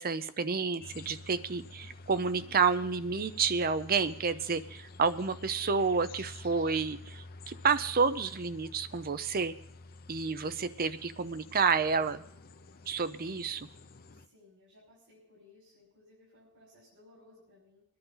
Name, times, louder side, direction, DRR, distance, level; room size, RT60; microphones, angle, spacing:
voice 1, 0.0-9.5 10.1-12.2 12.9-13.7, right 5 dB, 45° right, 13 dB, 0.7 m, -30 dB
sound 1, 0.8-14.3, left 2 dB, 45° left, 0.7 m, -50 dB
voice 2, 14.1-17.8, left 2 dB, 65° right, -5 dB, 5.7 m, -60 dB
23.0 x 10.5 x 4.0 m, 0.70 s
head